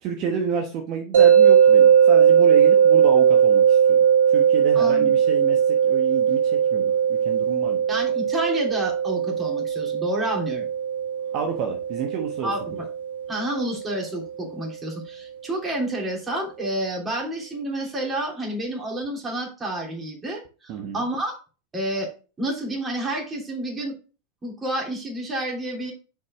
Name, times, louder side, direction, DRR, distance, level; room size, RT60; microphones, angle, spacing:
voice 1, 0.0-4.0 4.3-7.8 11.3-12.5 20.7-21.0, right 7 dB, 50° right, 3 dB, 1.1 m, -30 dB
sound 1, 1.1-14.2, right 8 dB, 75° right, 2.0 m, -19 dB
voice 2, 4.7-5.1 7.9-10.7 12.4-12.6 13.3-21.3 21.7-22.1 22.4-24.0 24.4-25.9, right 1 dB, 20° right, 0 dB, 3.1 m, -29 dB
6.9 x 5.3 x 3.6 m, 0.35 s
hypercardioid pair, 90°, 0 cm